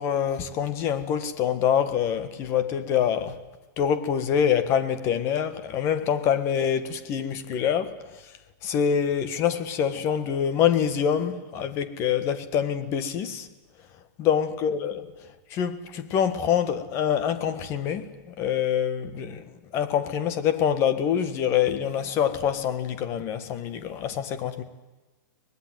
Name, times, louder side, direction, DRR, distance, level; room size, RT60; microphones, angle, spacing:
voice 1, 0.0-3.4 3.8-8.2 8.6-13.5 14.2-19.4 19.7-24.6, left 8 dB, 25° left, 1.7 m, -25 dB
24.0 x 19.5 x 9.4 m
hypercardioid pair, 165°, 11 cm